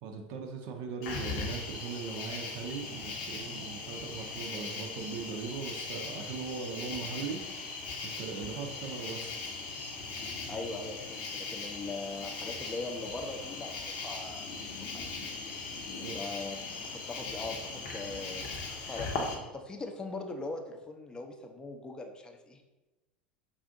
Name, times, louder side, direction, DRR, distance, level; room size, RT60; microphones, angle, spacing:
voice 1, 0.0-7.7 8.0-9.4 15.9-16.2, right 5 dB, 55° right, 3 dB, 0.5 m, -39 dB
Cricket, 1.0-19.3, left 4 dB, 55° left, 0.7 m, -39 dB
voice 2, 10.5-15.1 16.1-16.6 16.8-18.5 18.8-19.3 19.5-22.6, left 3 dB, 15° left, 4 dB, 0.5 m, -41 dB
5.4 x 2.5 x 2.6 m, 1.1 s
figure-of-eight pair, 75°, 5 cm